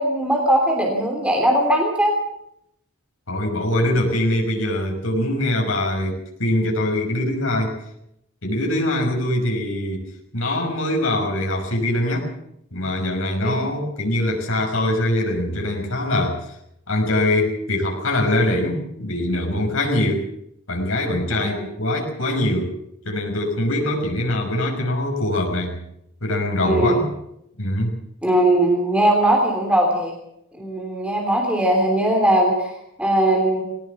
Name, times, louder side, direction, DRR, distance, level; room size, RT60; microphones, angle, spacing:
voice 1, 0.0-2.1 13.4-13.6 21.4-21.5 26.6-27.0 28.2-30.1 30.6-33.6, right 1 dB, 5° right, 1 dB, 3.2 m, -19 dB
voice 2, 3.3-7.8 8.4-10.0 10.3-12.3 12.7-16.5 16.9-20.2 20.7-22.7 23.0-25.8 26.2-27.1 27.6-28.0, left 1 dB, 70° left, 1 dB, 5.8 m, -23 dB
20.0 x 18.0 x 7.2 m, 0.78 s
head